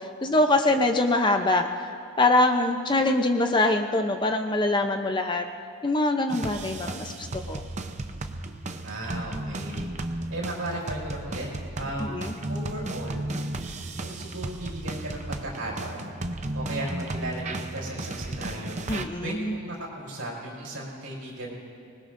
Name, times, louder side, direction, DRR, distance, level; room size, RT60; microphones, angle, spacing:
voice 1, 0.0-1.9 2.2-5.4 5.8-7.6 12.1-12.3 18.9-19.6, left 2 dB, 20° left, 5 dB, 0.6 m, -24 dB
sound 1, 6.3-19.0, right 2 dB, 30° right, 0.7 m, -34 dB
voice 2, 8.8-9.9 10.3-11.5 11.8-12.1 12.5-13.3 14.0-16.2 16.5-18.8 19.2-21.5, right 1 dB, 70° right, -3 dB, 4.9 m, -35 dB
25.0 x 20.0 x 2.6 m, 2.6 s
head